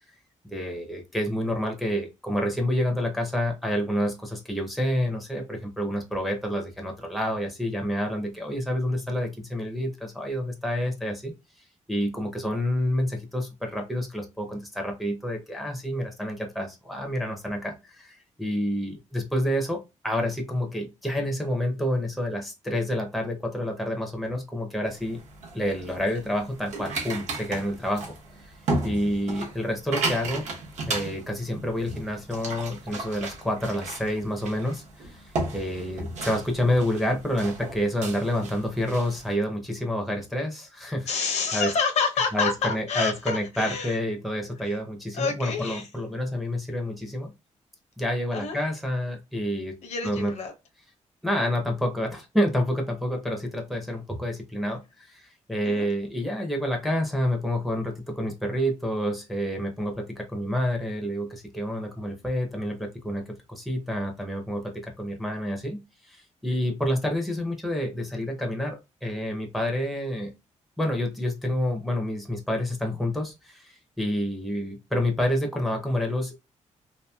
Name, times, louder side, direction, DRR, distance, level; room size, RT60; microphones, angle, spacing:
voice 1, 0.4-11.3 11.9-25.2 25.5-28.1 28.4-28.5 28.8-30.5 30.9-41.1 41.5-41.7 42.3-47.3 48.0-49.8 50.0-50.3 51.2-65.8 66.1-70.3 70.8-76.4, equal, ahead, 1 dB, 0.5 m, -28 dB
sound 1, 24.8-39.3, right 2 dB, 65° right, 0.8 m, -35 dB
voice 2, 41.1-44.0 44.6-44.8 45.1-45.9 48.3-48.6 49.8-50.5 55.6-55.9, left 5 dB, 60° left, 4 dB, 0.7 m, -28 dB
2.9 x 2.6 x 2.2 m, 0.25 s
wide cardioid pair, 150°, 13 cm